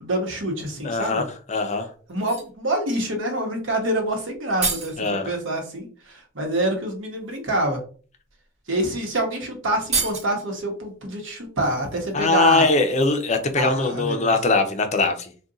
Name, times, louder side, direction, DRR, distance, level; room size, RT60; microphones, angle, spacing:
voice 1, 0.0-1.2 2.1-4.9 5.2-7.8 8.7-12.7 13.6-14.3, right 1 dB, 80° right, 2 dB, 1.0 m, -26 dB
voice 2, 0.8-1.9 5.0-5.4 12.1-15.3, left 3 dB, 35° left, 6 dB, 0.5 m, -21 dB
sound 1, 1.2-1.3 2.1-2.6 4.1-4.2 4.3-5.0 6.4-6.5 7.2-7.4 8.3-8.4 8.7-8.9 9.1-9.2 9.8-10.5 11.6-13.6 13.9-14.1, right 4 dB, 35° right, 1.0 m, -31 dB
2.5 x 2.2 x 3.8 m, 0.41 s
head